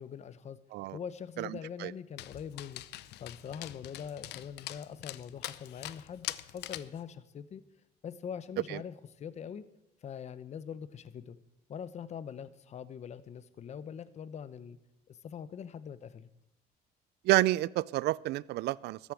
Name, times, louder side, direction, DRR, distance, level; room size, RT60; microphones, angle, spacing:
voice 1, 0.0-0.6 0.9-2.8 3.2-7.6 8.0-9.6 10.0-11.4 11.7-14.8 15.1-16.3, left 7 dB, 40° left, 15 dB, 0.8 m, -43 dB
voice 2, 1.4-1.9 8.7-8.8 17.2-19.0, right 17 dB, 75° right, 22 dB, 0.5 m, -29 dB
Dog, 2.2-7.0, left 16 dB, 80° left, 0.6 m, -43 dB
14.0 x 8.3 x 8.4 m, 0.81 s
cardioid pair, 110°, 17 cm